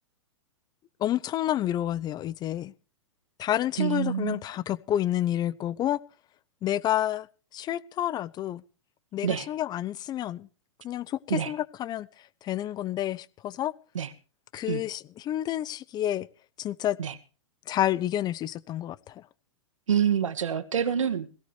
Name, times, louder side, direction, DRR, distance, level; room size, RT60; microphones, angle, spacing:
voice 1, 1.0-2.7 3.4-6.0 6.6-7.3 7.5-8.6 9.1-10.5 10.8-12.1 12.4-13.7 14.5-16.3 16.6-17.0 17.7-19.2, left 12 dB, 25° left, 0.8 m, -29 dB
voice 2, 3.8-4.4 9.2-9.5 11.3-11.5 13.9-14.1 14.7-14.8 17.0-17.1 19.9-21.4, right 8 dB, 75° right, 2.0 m, -27 dB
19.0 x 17.0 x 3.2 m
hypercardioid pair, 120°, 16 cm